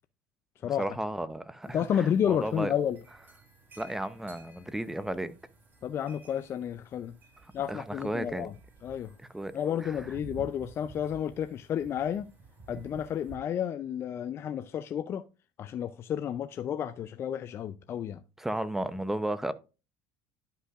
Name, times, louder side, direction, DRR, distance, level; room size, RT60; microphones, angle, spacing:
voice 1, 0.8-2.7 3.8-5.3 7.7-8.5 9.3-9.5 9.8-9.9 18.4-19.5, right 1 dB, 5° right, 0.7 m, -33 dB
sound 1, 1.6-13.4, right 3 dB, 30° right, 3.8 m, -52 dB
voice 2, 1.7-3.0 5.8-7.2 7.5-8.5 8.8-9.1 9.5-12.3 12.7-15.2 15.6-18.2, left 9 dB, 40° left, 0.5 m, -31 dB
11.5 x 5.5 x 2.5 m
supercardioid pair, 100°, 6 cm